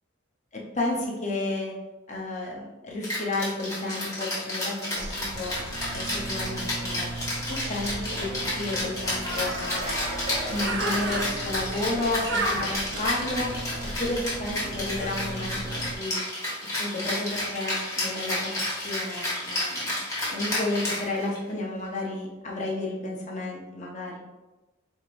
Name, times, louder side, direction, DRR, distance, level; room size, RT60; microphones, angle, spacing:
voice 1, 0.7-1.7 2.1-4.7 5.2-5.5 5.9-7.1 7.5-9.8 10.5-13.5 14.0-16.2 16.8-20.0 20.3-24.2, left 2 dB, 35° left, -2 dB, 0.7 m, -32 dB
Rattle (instrument), 3.0-21.5, left 1 dB, 15° left, 1.1 m, -31 dB
Bird, 5.0-15.9, right 2 dB, 55° right, 0.5 m, -34 dB
sound 1, 9.7-11.8 17.3-17.4 19.2-19.3, right 1 dB, 90° right, 1.0 m, -37 dB
4.5 x 3.1 x 2.5 m, 1.1 s
head